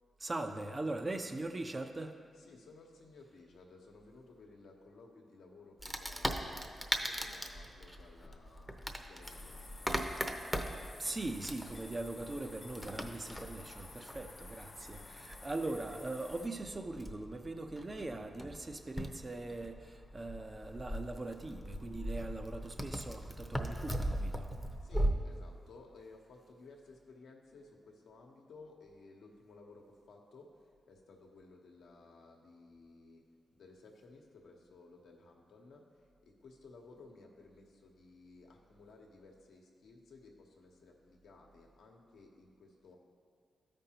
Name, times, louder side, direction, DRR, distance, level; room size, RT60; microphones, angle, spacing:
voice 1, 0.2-2.2 11.0-24.5, right 2 dB, 35° right, 6 dB, 0.7 m, -41 dB
voice 2, 2.4-9.7 24.8-30.5 30.9-33.2 33.5-43.0, left 3 dB, 85° left, 0 dB, 1.0 m, -57 dB
Wood, 5.8-25.1, equal, 10° right, 0.8 m, -40 dB
sound 1, 9.2-16.5, left 3 dB, 35° left, 0.5 m, -53 dB
13.0 x 5.3 x 2.9 m, 2.1 s
cardioid pair, 55°, 0 cm